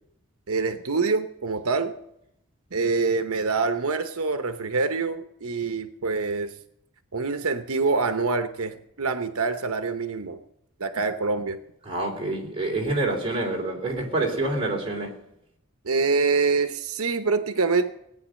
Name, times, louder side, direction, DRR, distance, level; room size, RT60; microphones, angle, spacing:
voice 1, 0.5-1.9 2.7-6.5 7.1-10.4 10.8-11.6 15.8-17.9, right 4 dB, 90° right, 1.0 m, -25 dB
voice 2, 11.8-15.2, right 2 dB, 25° right, 3.4 m, -27 dB
18.0 x 9.4 x 6.5 m
head